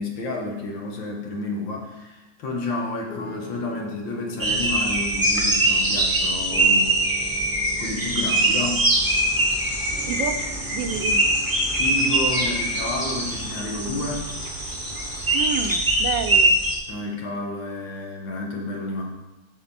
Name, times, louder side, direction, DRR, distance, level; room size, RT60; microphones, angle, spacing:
voice 1, 0.0-6.9 7.8-8.9 11.7-14.3 16.9-19.0, left 2 dB, 75° left, 0 dB, 2.1 m, -30 dB
Piano, 3.1-16.4, left 2 dB, 35° left, 0.9 m, -43 dB
sound 1, 4.4-16.8, right 1 dB, 15° right, 0.7 m, -23 dB
sound 2, 8.9-15.8, left 3 dB, 55° left, 0.5 m, -39 dB
voice 2, 10.1-10.4 10.7-11.3 15.3-16.6, right 7 dB, 75° right, 8 dB, 1.3 m, -29 dB
8.6 x 6.6 x 4.2 m, 1.1 s
omnidirectional pair, 2.1 m